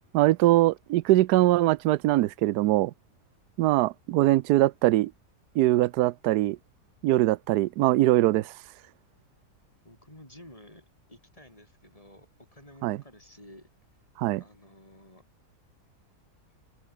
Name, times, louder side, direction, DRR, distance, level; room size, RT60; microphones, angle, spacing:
voice 1, 0.1-2.9 3.6-5.1 5.6-6.6 7.0-8.5 12.8-13.0 14.2-14.4, right 16 dB, 80° right, 1.1 m, -22 dB
voice 2, 9.8-13.7 14.3-15.2, left 1 dB, 20° left, 5.6 m, -52 dB
open air
omnidirectional pair, 1.7 m